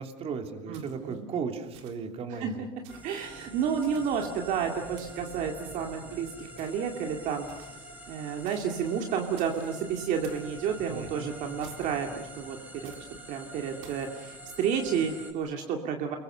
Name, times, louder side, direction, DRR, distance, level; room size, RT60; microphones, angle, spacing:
voice 1, 0.0-2.6 10.9-11.4, right 5 dB, 40° right, 5 dB, 3.0 m, -36 dB
voice 2, 0.7-1.3 2.4-2.5 3.0-7.5 8.1-12.9 13.3-16.2, right 7 dB, 55° right, 3 dB, 2.3 m, -31 dB
sound 1, 0.7-1.2 1.7-2.2 2.8-3.2 3.8-4.4 5.0-5.4 6.6-6.9 7.5-7.9 8.5-8.8 9.4-9.7 10.2-10.5 11.6-12.1 12.8-13.1 13.8-14.1, right 7 dB, 80° right, 3.7 m, -53 dB
sound 2, 2.9-15.3, right 1 dB, 10° right, 6.4 m, -46 dB
29.5 x 22.5 x 6.7 m, 1.1 s
supercardioid pair, 120°, 15 cm